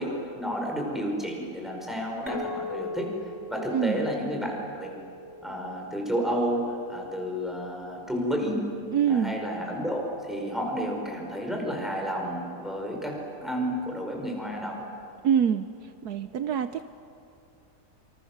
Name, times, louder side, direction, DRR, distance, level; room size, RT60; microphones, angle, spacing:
voice 1, 0.0-3.1 3.5-5.0 5.4-8.6 9.1-14.8, equal, ahead, 0 dB, 5.2 m, -31 dB
Chink clink, 2.3-6.8, left 2 dB, 20° left, 2.1 m, -40 dB
voice 2, 3.7-4.1 8.9-9.4 15.2-15.7 16.0-16.8, right 8 dB, 75° right, 10 dB, 1.3 m, -25 dB
27.0 x 26.5 x 7.3 m, 2.6 s
omnidirectional pair, 1.7 m